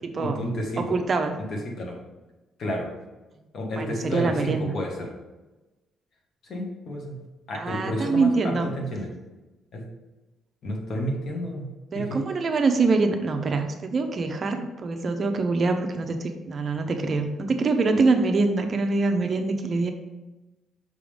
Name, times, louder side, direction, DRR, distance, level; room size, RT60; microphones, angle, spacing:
voice 1, 0.2-1.0 1.5-2.0 2.6-2.9 3.5-5.1 6.4-7.2 7.5-9.1 9.7-9.8 10.6-11.7 11.9-12.3, equal, 55° left, 0 dB, 1.5 m, -31 dB
voice 2, 0.8-1.4 3.8-4.7 7.5-8.7 11.9-19.9, right 3 dB, 40° right, 6 dB, 0.6 m, -24 dB
6.0 x 3.7 x 5.1 m, 1.1 s
cardioid pair, 125°, 0 cm